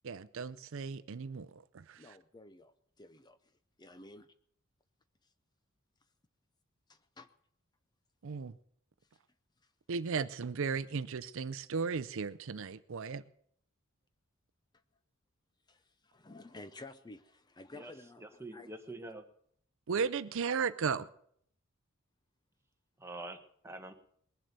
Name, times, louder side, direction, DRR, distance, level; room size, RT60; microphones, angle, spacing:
voice 1, 0.0-1.5 1.7-2.0 8.2-8.5 9.9-13.2 19.9-21.1, right 5 dB, 60° right, 0.5 m, -35 dB
voice 2, 2.0-3.4 3.8-4.3 6.9-7.3 15.7-18.7, left 2 dB, 20° left, 0.6 m, -52 dB
voice 3, 18.2-19.2 23.0-23.9, right 2 dB, 10° right, 1.2 m, -45 dB
20.5 x 7.6 x 6.6 m
head